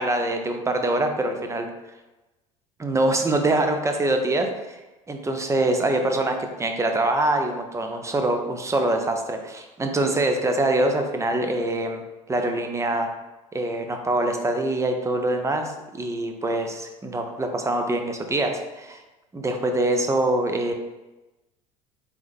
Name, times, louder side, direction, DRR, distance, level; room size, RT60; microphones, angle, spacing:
voice 1, 0.0-1.7 2.8-4.8 5.1-12.0 12.3-13.1 13.5-19.0 19.3-20.7, right 2 dB, 15° right, 5 dB, 0.6 m, -24 dB
3.5 x 3.1 x 3.5 m, 1.1 s
hypercardioid pair, 70°, 18 cm